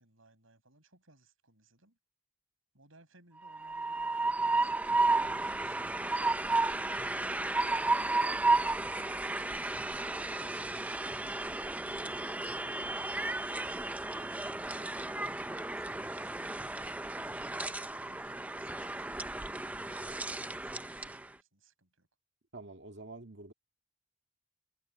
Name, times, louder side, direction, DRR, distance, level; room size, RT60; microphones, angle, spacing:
voice 1, 0.0-2.0 2.7-11.1 14.1-22.1, right 2 dB, 80° right, 6.3 m, -64 dB
Train, 3.4-21.2, right 2 dB, 5° right, 0.4 m, -33 dB
voice 2, 22.5-23.5, right 2 dB, 60° right, 2.0 m, -47 dB
head